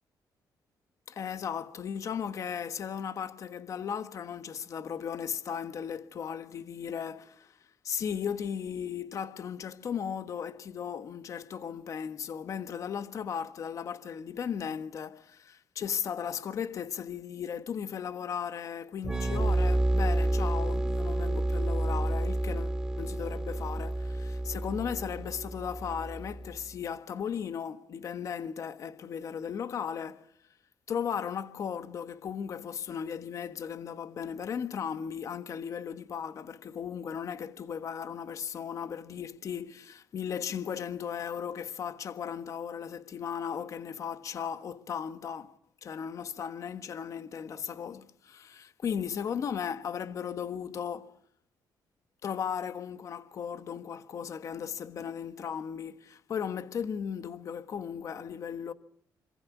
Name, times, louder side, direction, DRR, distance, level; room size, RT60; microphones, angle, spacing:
voice 1, 1.1-7.5 7.8-30.3 30.9-45.5 45.8-51.2 52.2-58.7, left 7 dB, 45° left, 1.4 m, -36 dB
sound 1, 19.0-26.6, right 1 dB, 10° right, 2.2 m, -29 dB
27.0 x 26.0 x 6.1 m
cardioid pair, 160°, 7 cm